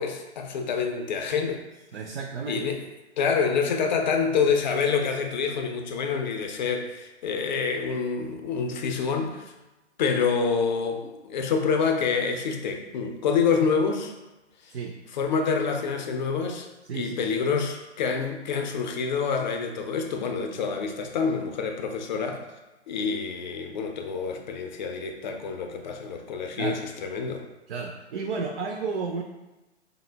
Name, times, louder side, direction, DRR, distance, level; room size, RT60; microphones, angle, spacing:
voice 1, 0.0-1.6 2.5-2.8 3.2-9.5 10.0-14.1 14.6-14.7 15.1-16.7 16.9-22.4 22.9-27.4, left 5 dB, 40° left, 4 dB, 0.4 m, -27 dB
voice 2, 1.9-2.6 14.7-14.9 16.9-17.2 26.5-26.8 27.7-29.2, right 5 dB, 60° right, 1 dB, 0.5 m, -32 dB
3.6 x 2.0 x 3.2 m, 1.1 s
figure-of-eight pair, 125°, 35 cm